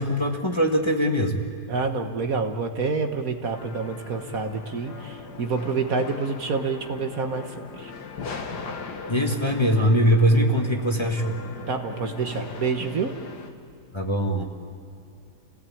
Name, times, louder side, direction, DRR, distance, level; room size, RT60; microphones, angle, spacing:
voice 1, 0.0-1.4 9.1-11.3 13.9-14.4, equal, 15° left, 1 dB, 1.8 m, -21 dB
voice 2, 1.7-7.9 11.7-13.1, right 4 dB, 60° right, 5 dB, 1.7 m, -28 dB
sound 1, 3.5-13.5, left 5 dB, 85° left, 2.1 m, -39 dB
28.5 x 17.5 x 8.6 m, 2.5 s
omnidirectional pair, 1.7 m